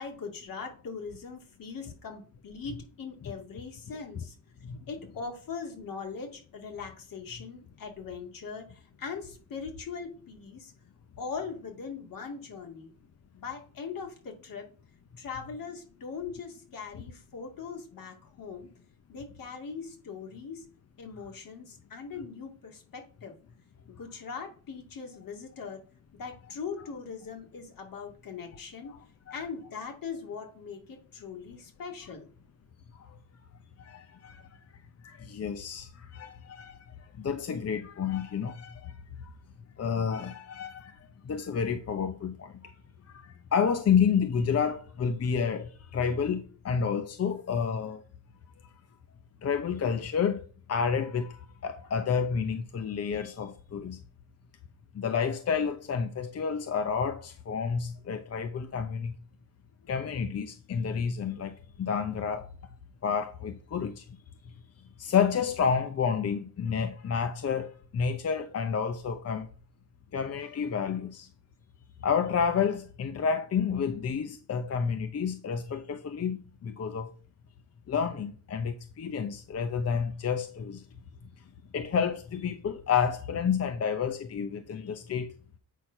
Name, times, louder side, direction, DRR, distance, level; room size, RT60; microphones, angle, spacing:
voice 1, 0.0-4.4 4.9-10.7 11.2-12.9 13.3-14.7 15.2-18.7 19.1-20.7 21.0-23.4 23.9-25.8 26.1-28.9 29.3-32.3, left 5 dB, 70° left, 2.4 m, -40 dB
voice 2, 33.8-34.5 35.0-39.3 39.8-40.9 41.2-42.7 43.0-48.0 49.4-50.4 50.7-54.0 54.9-59.1 59.9-62.5 63.0-64.1 65.0-69.5 70.1-71.3 72.0-77.1 77.9-80.8 81.7-85.3, left 6 dB, 45° left, 0.8 m, -30 dB
8.2 x 4.4 x 5.6 m
cardioid pair, 105°, 35 cm